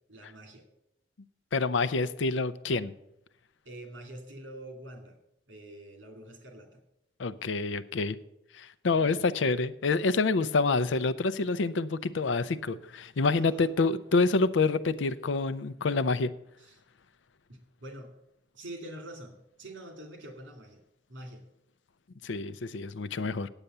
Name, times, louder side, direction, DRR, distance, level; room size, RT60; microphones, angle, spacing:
voice 1, 0.1-0.6 3.6-5.2 5.5-6.8 8.9-9.5 13.3-13.7 16.6-16.8 17.5-18.1 18.5-20.8 21.1-21.5, right 1 dB, 85° right, 4 dB, 2.5 m, -46 dB
voice 2, 1.5-2.9 7.2-8.2 8.5-16.3 22.2-23.5, left 3 dB, 80° left, 15 dB, 0.5 m, -27 dB
9.0 x 8.4 x 6.7 m, 0.81 s
head